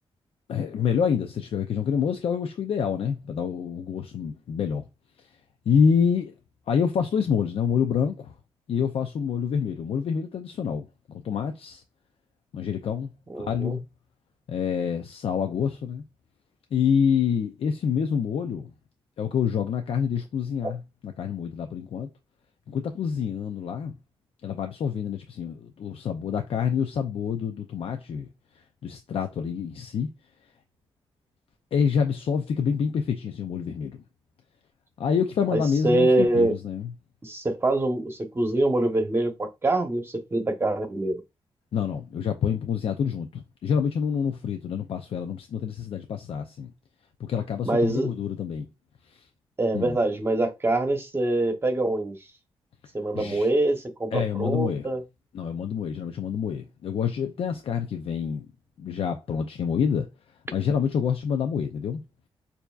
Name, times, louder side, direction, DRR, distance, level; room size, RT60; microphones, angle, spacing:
voice 1, 0.5-4.8 5.2-5.3 5.7-6.3 6.7-8.3 8.7-11.8 12.5-13.1 13.4-13.8 14.5-16.0 16.7-18.7 19.2-22.1 22.7-24.0 24.4-28.3 28.6-30.1 31.7-34.0 35.0-36.9 41.7-46.7 47.2-48.7 49.1-49.3 49.7-50.0 53.1-53.5 54.1-54.9 55.3-58.5 58.8-60.1 60.5-62.0, left 7 dB, 75° left, 0.5 m, -27 dB
voice 2, 13.3-13.8 20.6-20.7 35.5-36.6 37.2-41.2 47.6-48.1 49.6-52.2 52.9-55.0, right 2 dB, 25° right, 1.0 m, -24 dB
6.6 x 2.7 x 2.4 m
wide cardioid pair, 110°, 10 cm